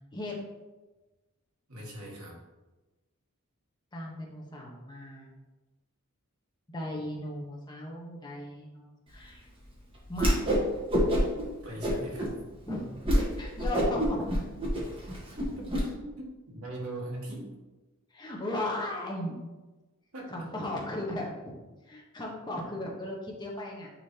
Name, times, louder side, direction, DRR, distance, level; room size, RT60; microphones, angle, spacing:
voice 1, 1.7-2.4 11.6-12.4 15.6-15.7 16.0-17.5 20.1-20.3, right 1 dB, 85° right, -3 dB, 1.9 m, -40 dB
voice 2, 3.9-5.3 6.7-9.5 10.1-10.4 11.7-12.0 12.7-12.9 13.4-14.3 18.1-19.4 20.3-21.5 21.8-23.9, left 1 dB, 20° left, -2 dB, 1.0 m, -37 dB
Whoosh swoosh swish, 10.1-10.6 10.9-11.4 11.8-12.3 12.7-12.8 13.0-13.2 13.6-15.8, equal, 25° right, 1.3 m, -26 dB
9.5 x 3.8 x 2.8 m, 1.1 s
head